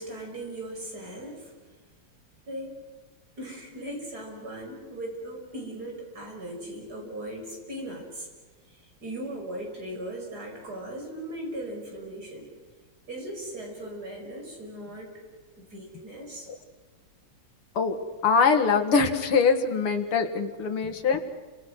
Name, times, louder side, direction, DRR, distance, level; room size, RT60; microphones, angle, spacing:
voice 1, 0.0-1.5 2.5-2.7 3.4-8.3 8.7-12.5 13.1-15.1 15.6-16.5, right 1 dB, 45° right, 0 dB, 6.7 m, -38 dB
voice 2, 18.2-21.2, left 5 dB, 85° left, 5 dB, 2.9 m, -23 dB
29.5 x 26.5 x 6.3 m, 1.4 s
omnidirectional pair, 2.4 m